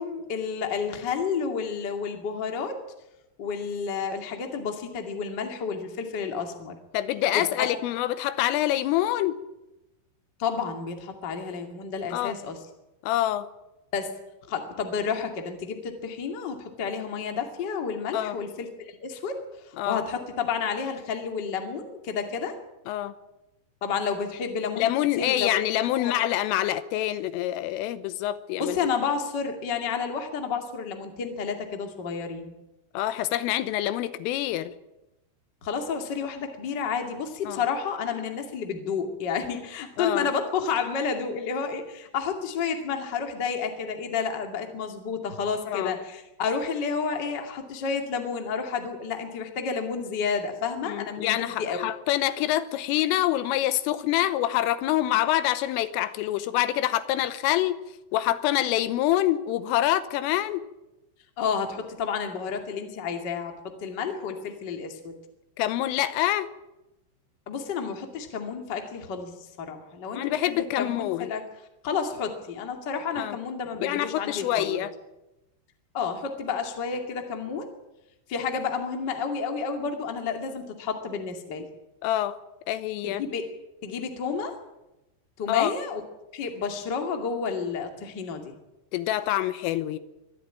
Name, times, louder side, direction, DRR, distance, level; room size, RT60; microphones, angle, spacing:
voice 1, 0.0-2.8 3.4-6.7 7.3-7.7 10.4-12.6 13.9-14.1 14.5-22.5 23.8-24.9 25.2-25.6 25.9-26.1 28.6-32.5 35.6-51.9 61.4-65.2 67.4-71.4 71.8-74.8 75.9-77.7 78.3-81.7 83.0-83.4 83.8-84.5 85.4-86.0 86.3-88.5, left 6 dB, 40° left, 4 dB, 1.7 m, -30 dB
voice 2, 6.9-9.4 12.1-12.4 13.0-13.5 18.1-18.4 19.8-20.0 22.9-23.1 24.8-28.8 32.9-34.7 37.5-37.6 40.0-40.3 45.7-46.0 50.9-57.8 58.1-60.6 65.6-66.5 70.1-71.3 73.2-73.4 73.8-74.9 82.0-82.4 82.7-83.2 85.5-85.7 88.9-90.0, left 13 dB, 85° left, 13 dB, 3.5 m, -26 dB
23.5 x 12.5 x 9.1 m, 0.97 s
omnidirectional pair, 5.7 m